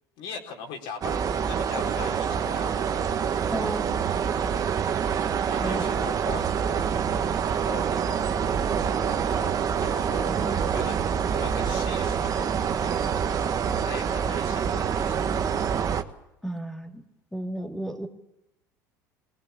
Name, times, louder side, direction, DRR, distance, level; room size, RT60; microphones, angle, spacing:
voice 1, 0.2-1.2 1.5-3.1 4.4-7.3 7.6-8.1 9.0-11.0 11.3-13.3 13.8-15.4, left 5 dB, 70° left, 1 dB, 4.4 m, -41 dB
sound 1, 1.0-16.0, right 7 dB, 40° right, 1.5 m, -26 dB
voice 2, 3.5-3.9 5.6-5.9 10.3-10.7 16.4-17.0 17.3-18.1, right 1 dB, 5° left, 3 dB, 2.5 m, -33 dB
20.5 x 19.0 x 8.5 m, 0.89 s
hypercardioid pair, 80°, 9 cm